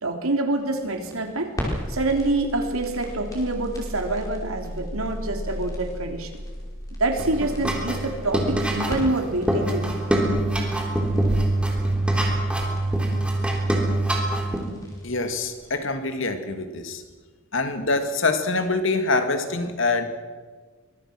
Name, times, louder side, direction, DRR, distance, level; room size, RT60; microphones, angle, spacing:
voice 1, 0.0-1.5 1.9-6.3 7.0-10.0, right 2 dB, 80° right, 5 dB, 3.4 m, -26 dB
sound 1, 0.6-15.8, equal, 15° left, 5.4 m, -36 dB
sound 2, 7.2-14.6, right 1 dB, 5° right, 3.4 m, -24 dB
voice 2, 15.0-17.0 17.5-20.0, left 3 dB, 65° left, 7 dB, 2.4 m, -25 dB
24.5 x 22.5 x 6.2 m, 1.4 s
head